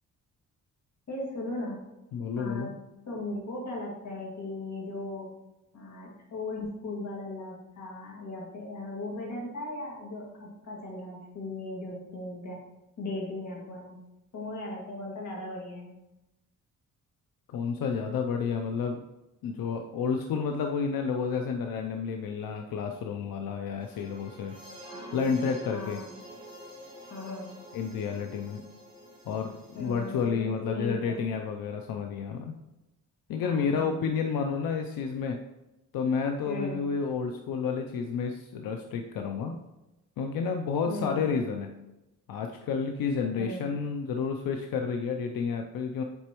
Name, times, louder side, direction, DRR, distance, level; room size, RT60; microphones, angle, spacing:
voice 1, 1.1-1.8 2.4-2.7 3.1-5.3 5.7-12.6 13.0-14.0 14.3-15.9 24.8-25.3 25.7-26.1 27.1-27.6 29.8-31.2 33.4-34.1 36.5-36.8 40.9-41.2 43.3-43.6, left 2 dB, 55° left, -3 dB, 2.0 m, -37 dB
voice 2, 2.1-2.7 17.5-19.0 19.4-24.5 25.1-26.0 27.7-28.6 29.3-32.5 33.3-35.4 35.9-39.6 40.2-41.7 42.3-46.0, left 6 dB, 90° left, 4 dB, 0.6 m, -30 dB
sound 1, 23.8-30.2, right 1 dB, 15° right, 1.7 m, -47 dB
7.9 x 4.1 x 3.0 m, 0.97 s
cardioid pair, 125°, 34 cm